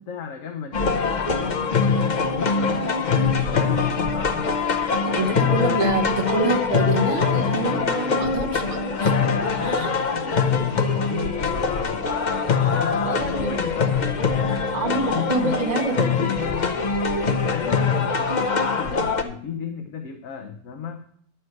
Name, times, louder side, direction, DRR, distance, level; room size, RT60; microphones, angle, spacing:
voice 1, 0.0-4.6 5.1-5.5 9.1-14.1 15.0-16.9 17.5-21.0, left 7 dB, 65° left, 5 dB, 1.2 m, -34 dB
sound 1, 0.7-19.2, left 5 dB, 40° left, 0.8 m, -23 dB
voice 2, 5.1-9.9 13.0-13.6 14.7-16.1, right 3 dB, 30° right, 2 dB, 1.2 m, -27 dB
11.0 x 7.4 x 4.6 m, 0.64 s
omnidirectional pair, 1.5 m